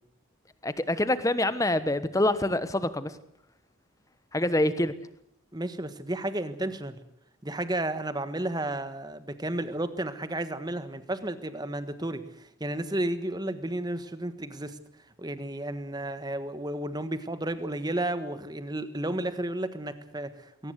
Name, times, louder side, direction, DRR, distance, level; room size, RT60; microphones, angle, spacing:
voice 1, 0.6-3.1 4.3-4.9, left 1 dB, 15° left, 13 dB, 1.1 m, -26 dB
voice 2, 5.5-7.0 7.4-14.8 15.2-20.7, right 1 dB, 20° right, 11 dB, 1.4 m, -32 dB
21.5 x 18.5 x 8.1 m, 0.72 s
head